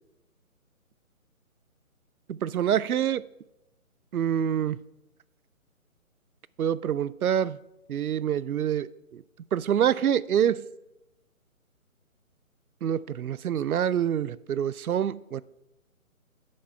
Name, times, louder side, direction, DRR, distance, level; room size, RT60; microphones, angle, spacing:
voice 1, 2.3-3.2 4.1-4.8 6.6-7.6 7.9-9.2 9.5-10.6 12.8-15.4, right 9 dB, 85° right, 0.5 m, -26 dB
10.0 x 5.3 x 5.7 m
figure-of-eight pair, 150°, 42 cm